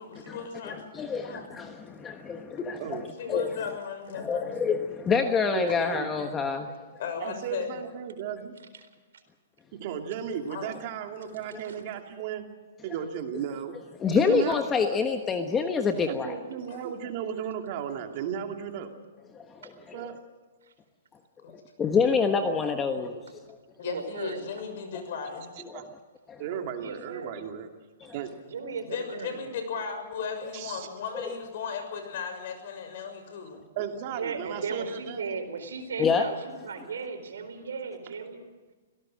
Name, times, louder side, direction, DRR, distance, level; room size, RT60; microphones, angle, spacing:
voice 1, 0.0-0.8 1.2-1.5 3.2-4.5 7.0-7.7 10.5-10.7 16.7-16.8 21.4-21.5 23.8-25.5 28.9-33.6, left 6 dB, 55° left, 6 dB, 6.4 m, -36 dB
voice 2, 0.6-3.5 4.1-6.7 14.0-16.3 19.3-19.7 21.8-23.2 25.6-25.9 26.3-26.4 28.0-28.1 31.1-31.2 36.0-36.2, left 5 dB, 15° left, 6 dB, 1.3 m, -27 dB
voice 3, 5.5-6.1 7.2-8.6 9.8-12.4 12.8-13.7 14.1-15.0 16.1-18.9 19.9-20.2 25.7-25.9 26.4-27.7 28.1-28.3 30.5-30.9 33.7-35.4, right 8 dB, 45° right, 4 dB, 2.6 m, -35 dB
voice 4, 23.8-24.4 26.8-27.4 28.5-29.5 34.1-38.4, right 5 dB, 85° right, 7 dB, 4.3 m, -36 dB
25.0 x 18.0 x 6.4 m, 1.3 s
hypercardioid pair, 150°, 0 cm